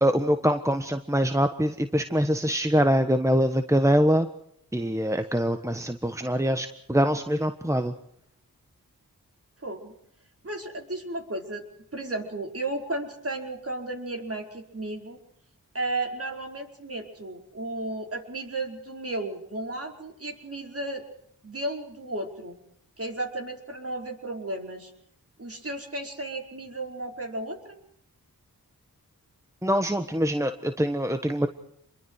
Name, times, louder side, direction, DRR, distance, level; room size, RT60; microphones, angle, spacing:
voice 1, 0.0-4.3 4.7-7.9 29.6-31.5, equal, 10° right, 8 dB, 1.3 m, -24 dB
voice 2, 9.6-9.9 10.4-11.7 11.9-15.2 15.7-21.0 21.4-22.6 23.0-24.9 25.4-27.8, right 2 dB, 40° right, 2 dB, 5.1 m, -34 dB
28.0 x 22.5 x 4.8 m, 0.72 s
cardioid pair, 60°, 36 cm